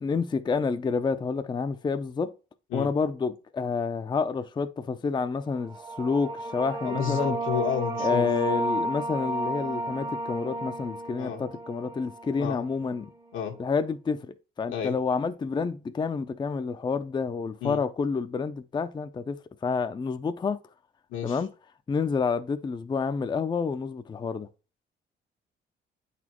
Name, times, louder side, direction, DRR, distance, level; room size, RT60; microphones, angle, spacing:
voice 1, 0.0-2.3 2.7-7.4 8.0-13.1 13.6-19.4 19.6-20.6 21.2-21.5 21.9-24.5, left 5 dB, 20° left, 0.4 m, -29 dB
sound 1, 5.6-12.8, right 1 dB, 20° right, 0.7 m, -32 dB
voice 2, 6.8-8.3 11.2-11.4 12.4-12.6 13.3-13.6 14.7-15.0 17.6-17.8 21.1-21.4, left 9 dB, 85° left, 1.3 m, -31 dB
8.2 x 4.2 x 2.9 m
cardioid pair, 90°, 20 cm